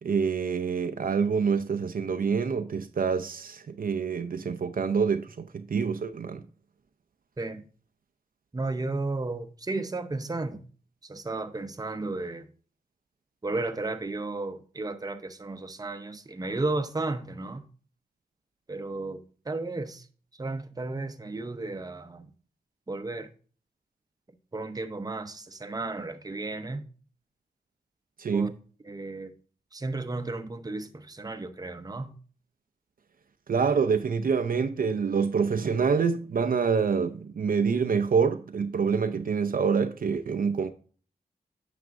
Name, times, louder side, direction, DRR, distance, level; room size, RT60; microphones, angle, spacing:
voice 1, 0.0-6.4 28.2-28.5 33.5-40.7, right 6 dB, 60° right, 0.6 m, -26 dB
voice 2, 8.5-10.6 11.0-12.5 13.4-17.6 18.7-20.0 20.4-22.3 22.9-23.3 24.5-26.8 28.3-28.5 28.9-29.3 29.7-32.1, right 2 dB, 25° right, 0.8 m, -33 dB
9.4 x 5.9 x 2.5 m
cardioid pair, 60°, 16 cm